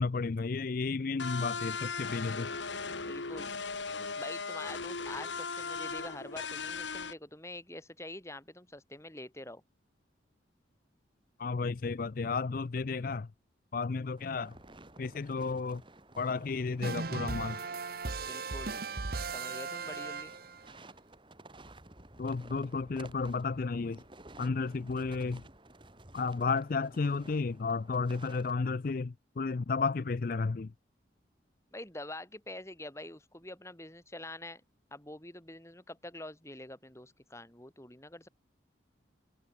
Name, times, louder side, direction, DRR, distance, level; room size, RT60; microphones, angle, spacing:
voice 1, 0.0-2.5 11.4-13.3 13.7-14.5 15.0-15.8 16.2-17.6 22.2-24.0 24.4-25.4 26.1-30.7, left 4 dB, 50° left, 0.5 m, -32 dB
sound 1, 1.2-7.1, left 4 dB, 75° left, 2.3 m, -37 dB
voice 2, 3.1-3.5 4.2-9.6 18.2-18.8 19.3-20.3 31.7-34.6 34.9-38.3, left 1 dB, 15° left, 4.6 m, -46 dB
sound 2, 14.2-28.5, right 2 dB, 25° right, 2.8 m, -54 dB
sound 3, 16.8-20.7, right 4 dB, 55° right, 1.0 m, -37 dB
head